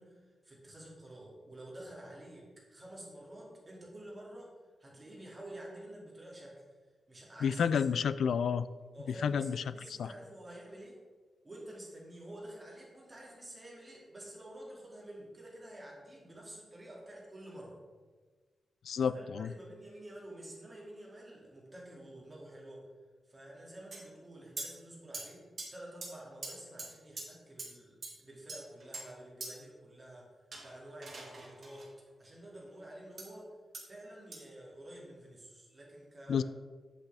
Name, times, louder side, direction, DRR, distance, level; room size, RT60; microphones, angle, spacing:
voice 1, 0.0-4.5 4.8-6.6 7.1-7.8 8.9-11.0 11.4-17.8 19.0-22.8 23.2-25.4 25.7-30.2 30.6-31.9 32.2-33.5 33.8-36.4, right 1 dB, 20° right, -4 dB, 2.4 m, -49 dB
voice 2, 7.4-8.7 9.1-9.6 9.9-10.1 18.8-19.5 36.3-36.4, left 7 dB, 80° left, 15 dB, 0.3 m, -30 dB
sound 1, 23.9-24.0 24.6-24.7 25.1-25.2 25.6-25.7 26.0-26.1 26.4-26.5 26.8-26.9 27.2-27.3 27.6-27.7 28.0-28.1 28.5-29.0 29.4-29.5 30.5-31.9 33.2-33.3 33.7-33.8 34.3-34.4, right 3 dB, 45° right, 2.0 m, -42 dB
8.3 x 7.6 x 3.4 m, 1.4 s
wide cardioid pair, 140°, 0 cm